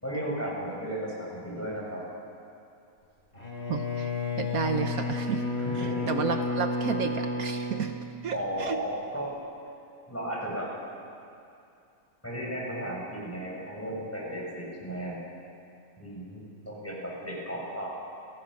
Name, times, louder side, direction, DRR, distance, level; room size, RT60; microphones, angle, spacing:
voice 1, 0.0-2.0 5.6-6.1 8.3-9.3 10.1-10.7 12.2-15.2 16.0-17.9, equal, 10° left, -4 dB, 6.1 m, -34 dB
Bowed string instrument, 3.3-8.7, left 2 dB, 40° left, 3.8 m, -32 dB
voice 2, 3.7-4.1 4.4-5.4 5.8-7.9 8.2-8.8, right 6 dB, 70° right, 6 dB, 1.4 m, -31 dB
29.5 x 17.0 x 6.3 m, 2.5 s
omnidirectional pair, 1.6 m